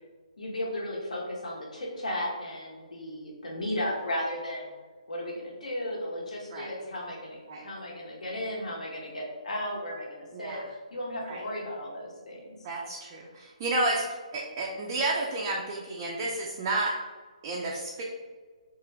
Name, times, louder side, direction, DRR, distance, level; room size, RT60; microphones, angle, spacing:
voice 1, 0.4-4.8 5.1-10.6 10.9-12.6, left 1 dB, 75° left, -3 dB, 1.3 m, -35 dB
voice 2, 10.3-10.6 11.2-11.4 12.6-14.0 14.3-17.0 17.4-18.0, right 2 dB, 20° right, -3 dB, 0.3 m, -31 dB
3.7 x 2.5 x 3.3 m, 1.4 s
hypercardioid pair, 170°, 4 cm